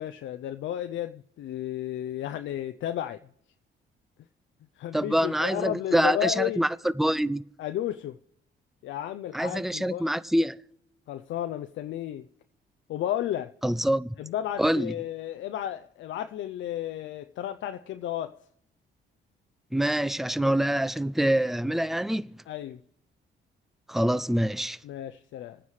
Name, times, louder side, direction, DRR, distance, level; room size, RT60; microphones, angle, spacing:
voice 1, 0.0-3.2 4.8-6.6 7.6-8.2 8.8-10.1 11.1-12.3 12.9-13.5 14.2-18.5 22.5-22.8 24.8-25.6, left 11 dB, 70° left, 0.5 m, -33 dB
voice 2, 4.9-6.7 7.0-7.4 9.3-10.6 13.6-14.1 14.6-14.9 19.7-22.4 23.9-24.8, right 1 dB, ahead, 0.4 m, -25 dB
28.0 x 9.6 x 3.2 m
cardioid pair, 90°, 20 cm